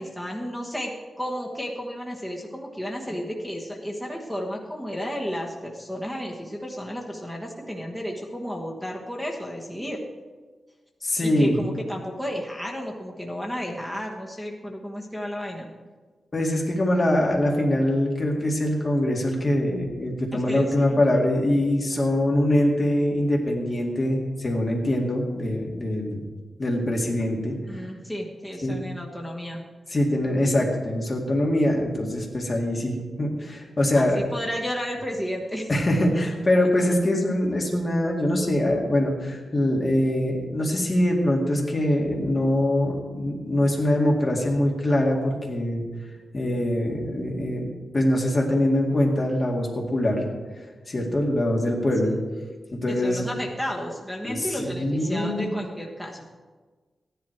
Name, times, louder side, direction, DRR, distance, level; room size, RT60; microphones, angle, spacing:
voice 1, 0.0-10.0 11.2-15.7 20.3-21.0 21.9-22.0 27.7-29.6 33.9-35.7 36.6-36.7 52.1-52.2 52.9-56.3, equal, 5° left, -2 dB, 1.3 m, -33 dB
voice 2, 11.0-11.6 16.3-26.2 26.6-27.6 28.6-28.8 29.9-34.2 35.7-45.8 46.3-47.6 47.9-50.2 50.9-52.1 52.7-53.2 54.2-55.5, left 1 dB, 30° left, -1 dB, 2.1 m, -23 dB
15.0 x 11.0 x 4.5 m, 1.4 s
wide cardioid pair, 175°, 0 cm